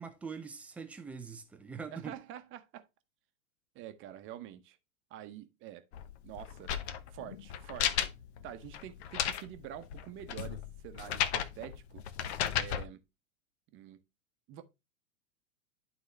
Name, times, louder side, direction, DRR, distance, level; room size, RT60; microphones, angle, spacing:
voice 1, 0.0-2.2, right 5 dB, 5° right, 0.3 m, -43 dB
voice 2, 1.9-2.9 3.7-4.8 5.1-5.8 6.2-6.7 7.1-8.1 8.4-12.0 12.5-13.0 13.7-14.0 14.5-14.6, right 12 dB, 30° right, 0.9 m, -46 dB
sound 1, 5.9-12.9, left 9 dB, 50° left, 0.9 m, -35 dB
11.0 x 3.9 x 3.1 m
hypercardioid pair, 105°, 40 cm